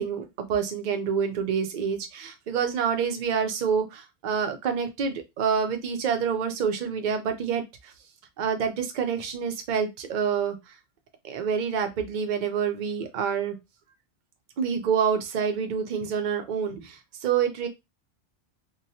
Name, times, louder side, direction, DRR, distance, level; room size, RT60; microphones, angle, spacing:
voice 1, 0.0-7.9 8.4-10.6 11.2-13.6 14.6-17.7, right 7 dB, 50° right, 6 dB, 0.6 m, -27 dB
2.9 x 2.2 x 2.7 m, 0.22 s
omnidirectional pair, 1.2 m